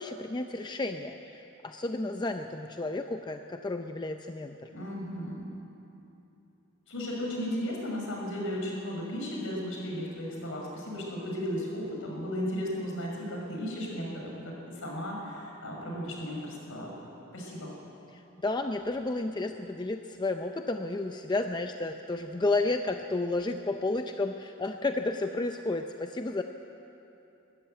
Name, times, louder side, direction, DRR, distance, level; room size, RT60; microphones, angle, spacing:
voice 1, 0.0-4.7 18.1-26.4, left 2 dB, 20° left, 5 dB, 0.5 m, -32 dB
voice 2, 4.7-5.5 6.9-17.7, equal, 65° left, -2 dB, 5.8 m, -35 dB
22.0 x 13.5 x 9.1 m, 2.9 s
head